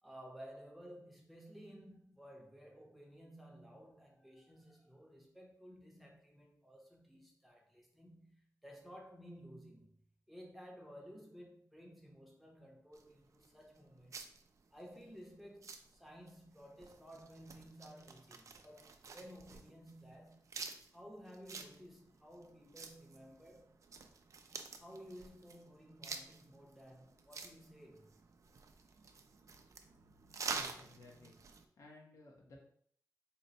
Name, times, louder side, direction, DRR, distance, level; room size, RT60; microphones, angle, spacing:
voice 1, 0.0-10.0 10.3-14.3 14.7-20.5 20.9-23.7 24.8-28.1, equal, ahead, -1 dB, 0.7 m, -55 dB
Lettuce twisting, 12.9-31.7, right 4 dB, 55° right, 0.3 m, -49 dB
voice 2, 30.5-31.3 31.8-32.6, left 2 dB, 55° left, -1 dB, 0.9 m, -57 dB
4.0 x 2.1 x 4.0 m, 0.63 s
wide cardioid pair, 170°, 7 cm